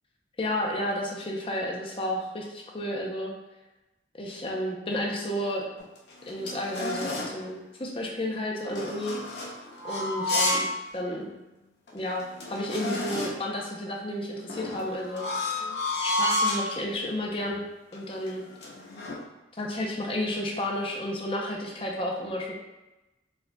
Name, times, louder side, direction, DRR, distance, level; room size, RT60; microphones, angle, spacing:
voice 1, 0.4-3.3 4.2-5.6 6.3-9.2 9.8-11.3 11.9-15.6 16.0-17.6 17.9-18.4 19.6-22.5, left 1 dB, 30° left, 0 dB, 0.6 m, -32 dB
sound 1, 5.8-7.4 8.7-10.8 11.2-11.3 11.9-12.0 12.2-13.5 14.5-16.7 17.4-17.7 17.9-19.2, left 1 dB, 80° left, 0.7 m, -31 dB
4.5 x 3.9 x 2.2 m, 1.0 s
head